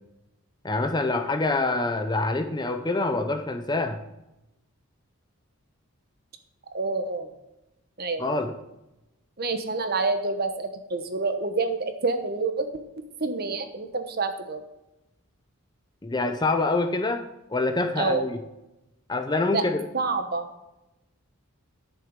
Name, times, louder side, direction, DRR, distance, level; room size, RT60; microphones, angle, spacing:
voice 1, 0.6-4.0 8.2-8.5 16.0-18.4 19.1-19.8, left 2 dB, 20° left, 7 dB, 0.6 m, -26 dB
voice 2, 6.7-7.3 8.0-8.3 9.4-12.7 13.2-14.6 18.0-18.2 19.5-19.6 19.9-20.5, right 3 dB, 45° right, 8 dB, 1.0 m, -27 dB
11.0 x 6.6 x 5.2 m, 0.94 s
head